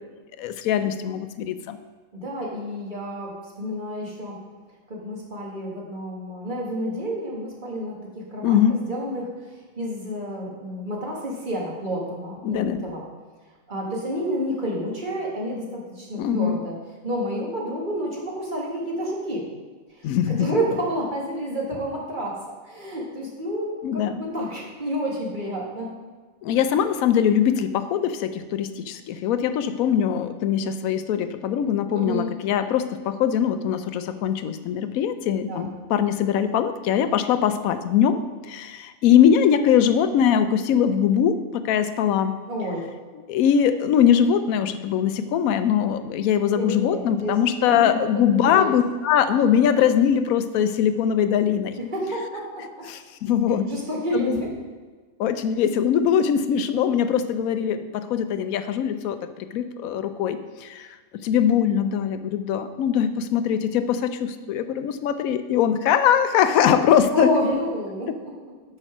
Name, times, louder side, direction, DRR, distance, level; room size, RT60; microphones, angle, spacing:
voice 1, 0.4-1.8 8.4-8.8 12.4-12.8 16.2-16.6 20.0-20.5 23.8-24.2 26.4-42.4 43.3-51.8 52.9-53.7 54.1-54.4 55.2-60.9 61.2-67.3, left 8 dB, 85° left, 11 dB, 1.0 m, -22 dB
voice 2, 2.1-3.3 3.6-4.4 4.9-13.0 13.7-16.8 17.0-19.4 19.9-20.1 20.4-22.4 22.7-25.9 31.9-32.3 35.5-35.7 42.5-42.9 46.5-47.4 47.6-48.7 51.8-52.6 53.5-54.5 67.1-68.5, equal, 35° right, -3 dB, 1.7 m, -29 dB
6.5 x 5.4 x 6.0 m, 1.4 s
omnidirectional pair, 1.4 m